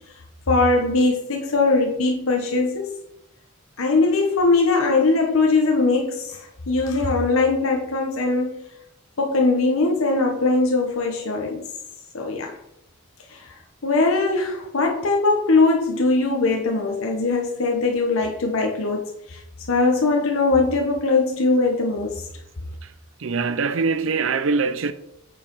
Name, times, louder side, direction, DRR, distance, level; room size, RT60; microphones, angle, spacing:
voice 1, 0.5-2.9 3.8-8.7 9.2-11.7 12.1-12.6 13.3-13.5 13.8-19.4 19.7-22.2, left 3 dB, 85° left, 1.1 m, -21 dB
voice 2, 23.2-24.9, right 4 dB, 65° right, 0.5 m, -23 dB
8.5 x 4.8 x 5.4 m
head